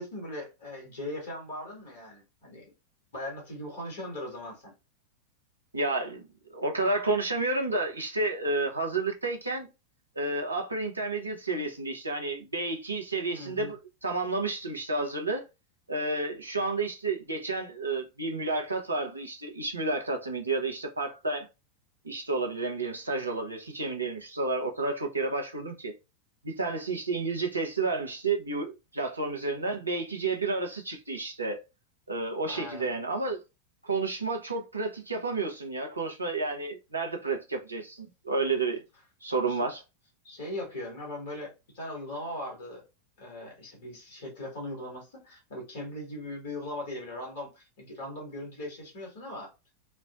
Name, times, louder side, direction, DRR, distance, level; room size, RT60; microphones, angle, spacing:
voice 1, 0.0-2.6 3.1-4.7 13.3-13.7 32.4-32.9 39.5-39.6 40.2-42.8 43.2-49.5, left 1 dB, 60° left, 1.7 m, -39 dB
voice 2, 5.7-9.7 10.2-15.5 15.9-21.5 22.0-25.9 26.4-31.6 32.1-33.4 33.8-38.8 39.2-39.8, right 3 dB, 80° right, 0.7 m, -31 dB
4.2 x 2.1 x 2.4 m
figure-of-eight pair, 90°, 0 cm